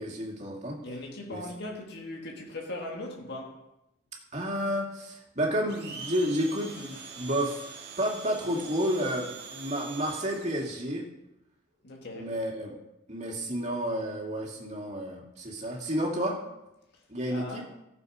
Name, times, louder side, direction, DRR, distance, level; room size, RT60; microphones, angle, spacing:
voice 1, 0.0-0.8 1.3-1.4 4.3-7.6 8.0-11.1 12.1-12.7 13.1-16.4 17.1-17.6, equal, 35° right, 2.3 m, -31 dB
voice 2, 0.8-3.6 11.8-12.3 17.3-17.6, left 1 dB, 55° left, 1.9 m, -39 dB
Domestic sounds home sounds, 5.7-10.8, right 5 dB, 55° right, 1.8 m, -44 dB
14.0 x 7.1 x 5.0 m
head